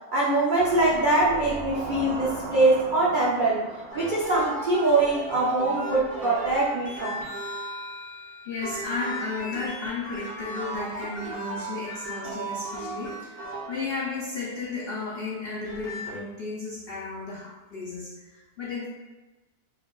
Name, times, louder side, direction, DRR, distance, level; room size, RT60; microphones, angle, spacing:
voice 1, 0.1-3.6 3.9-7.2, right 2 dB, 85° right, -6 dB, 0.4 m, -23 dB
sound 1, 0.6-5.5 5.8-5.9, right 2 dB, 50° right, 0.8 m, -38 dB
sound 2, 3.9-14.4 15.4-16.2, right 1 dB, 10° left, 1.4 m, -36 dB
voice 2, 8.5-18.9, left 4 dB, 85° left, -4 dB, 0.5 m, -34 dB
4.5 x 2.5 x 2.3 m, 1.1 s
omnidirectional pair, 1.6 m